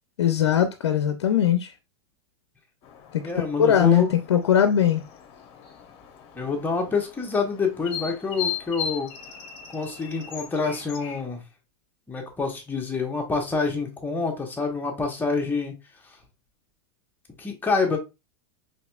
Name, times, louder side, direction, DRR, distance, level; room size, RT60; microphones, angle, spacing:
voice 1, 0.2-1.7 3.1-3.2 3.6-5.0, left 9 dB, 90° left, 0.5 m, -20 dB
sound 1, 2.8-11.3, left 9 dB, 45° left, 0.9 m, -38 dB
voice 2, 3.2-4.1 6.3-9.1 9.7-11.4 12.1-15.7 17.4-18.0, left 4 dB, 15° left, 1.1 m, -27 dB
4.1 x 3.1 x 2.3 m
hypercardioid pair, 115°, 14 cm